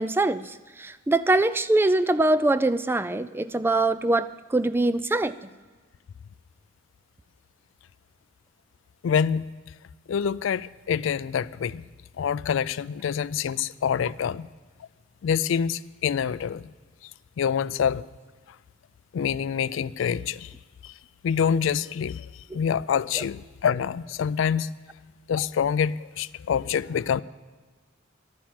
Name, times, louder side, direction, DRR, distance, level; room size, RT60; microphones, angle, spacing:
voice 1, 0.0-5.3 22.5-22.6, right 2 dB, 10° right, 0.3 m, -23 dB
voice 2, 9.0-9.5 10.1-11.8 12.2-14.5 15.2-16.6 17.4-18.0 19.1-20.5 20.8-20.9 21.2-22.3 22.5-24.7 25.3-27.2, left 7 dB, 65° left, 0.3 m, -26 dB
11.5 x 9.3 x 7.4 m
head